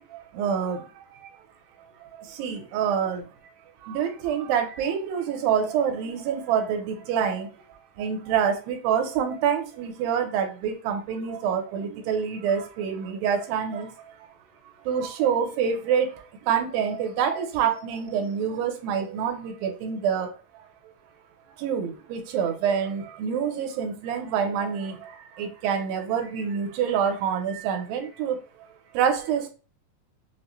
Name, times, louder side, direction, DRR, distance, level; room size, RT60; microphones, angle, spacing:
voice 1, 0.1-1.3 2.0-3.3 3.8-7.5 8.0-13.9 14.7-20.4 21.6-28.4 28.9-29.5, right 7 dB, 80° right, 4 dB, 2.5 m, -27 dB
6.0 x 2.1 x 3.0 m, 0.35 s
omnidirectional pair, 4.2 m